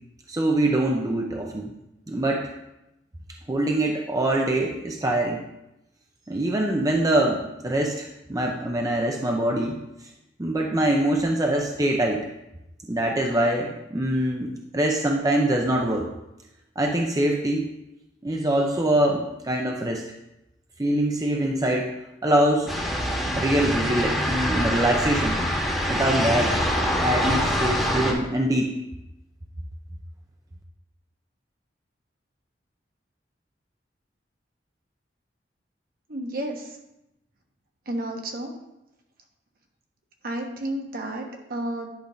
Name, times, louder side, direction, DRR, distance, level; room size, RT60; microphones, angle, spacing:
voice 1, 0.3-1.7 2.1-2.5 3.5-5.4 6.3-9.8 10.4-12.2 12.9-16.1 16.8-17.7 18.2-20.0 20.8-21.9 22.2-22.7 23.4-25.4 25.9-26.6 27.0-28.7, right 1 dB, 20° right, 1 dB, 0.6 m, -24 dB
sound 1, 22.7-28.1, equal, ahead, 1.4 m, -25 dB
voice 2, 36.1-36.8 37.8-38.5 40.2-41.9, right 1 dB, 55° right, 2 dB, 1.2 m, -31 dB
10.5 x 3.5 x 5.1 m, 0.89 s
head